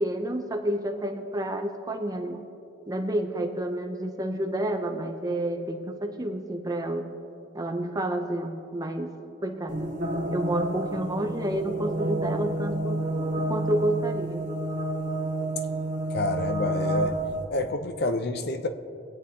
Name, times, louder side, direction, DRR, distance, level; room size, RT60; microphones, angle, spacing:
voice 1, 0.0-2.4 2.9-7.2 7.5-9.1 9.4-10.0 10.3-13.0 13.4-14.5, right 1 dB, 20° right, 4 dB, 0.7 m, -30 dB
sound 1, 9.7-17.4, right 1 dB, 40° right, 1.5 m, -29 dB
voice 2, 16.1-17.2 17.5-18.7, left 2 dB, 50° left, 8 dB, 0.7 m, -28 dB
21.5 x 9.3 x 2.9 m, 2.7 s
head